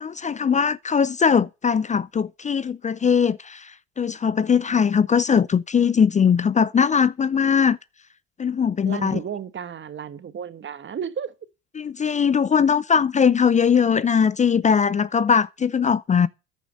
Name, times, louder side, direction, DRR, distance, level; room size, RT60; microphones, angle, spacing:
voice 1, 0.0-7.8 8.4-9.2 11.8-16.3, left 6 dB, 20° left, 0.5 m, -20 dB
voice 2, 8.8-11.3, right 7 dB, 35° right, 1.3 m, -33 dB
10.0 x 7.9 x 7.4 m
hypercardioid pair, 65°, 33 cm